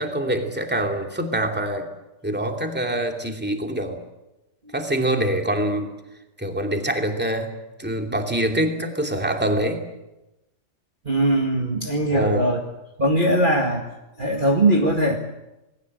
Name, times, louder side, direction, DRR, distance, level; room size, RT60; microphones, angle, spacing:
voice 1, 0.0-1.9 2.2-4.0 4.7-5.9 6.4-7.5 7.8-9.8 12.1-12.5, right 1 dB, 5° right, 3 dB, 2.6 m, -24 dB
voice 2, 11.1-12.6 13.0-13.9 14.2-15.2, right 1 dB, 30° right, 1 dB, 2.0 m, -20 dB
27.5 x 20.0 x 7.8 m, 0.97 s
omnidirectional pair, 1.8 m